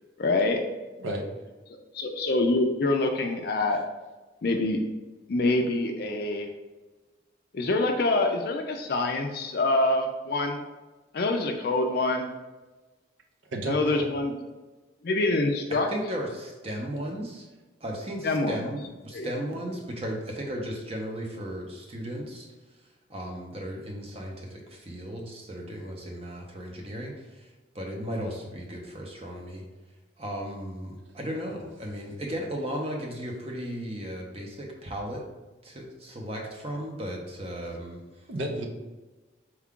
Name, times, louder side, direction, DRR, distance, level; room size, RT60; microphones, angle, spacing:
voice 1, 0.2-0.6 1.7-3.8 4.4-4.8 5.3-6.5 7.5-10.6 11.1-12.3 13.7-14.3 15.0-15.9 18.2-18.6 19.1-19.3, left 2 dB, 55° left, 3 dB, 0.4 m, -25 dB
voice 2, 13.5-14.1 38.3-38.7, right 1 dB, 80° right, 2 dB, 0.7 m, -31 dB
voice 3, 15.9-17.5 17.8-22.5 23.1-29.6 30.2-35.2 35.6-38.3, equal, 30° right, 0 dB, 0.7 m, -35 dB
4.5 x 2.3 x 3.6 m, 1.2 s
head